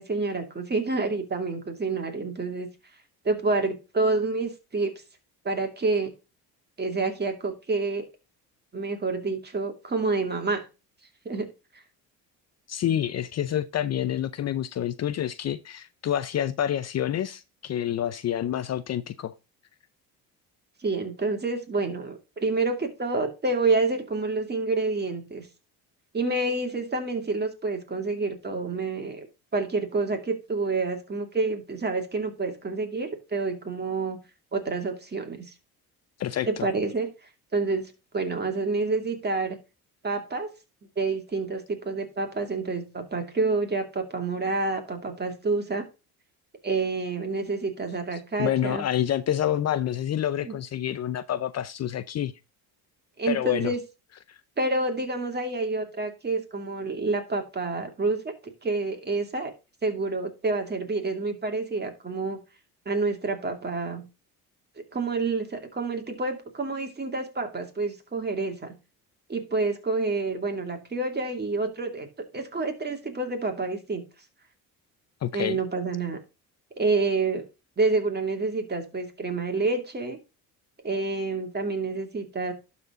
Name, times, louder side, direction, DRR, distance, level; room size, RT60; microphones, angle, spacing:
voice 1, 0.0-2.7 3.2-4.9 5.4-6.1 6.8-8.1 8.7-10.7 11.2-11.5 20.8-25.5 26.1-29.3 29.5-34.2 34.5-35.5 36.5-37.1 37.5-39.6 40.0-40.5 41.0-45.8 46.6-48.8 50.4-50.5 53.2-53.8 54.6-58.2 58.6-59.5 59.8-62.4 62.9-64.0 64.9-68.7 69.3-72.1 72.3-74.0 75.3-76.2 76.8-77.4 77.8-80.2 80.8-82.5, right 3 dB, 25° right, 2.4 m, -28 dB
voice 2, 12.7-19.3 36.2-36.6 48.4-52.3 53.3-53.7 54.3-54.4 75.2-75.6, left 11 dB, 45° left, 0.6 m, -28 dB
12.0 x 4.2 x 3.7 m
supercardioid pair, 85°, 37 cm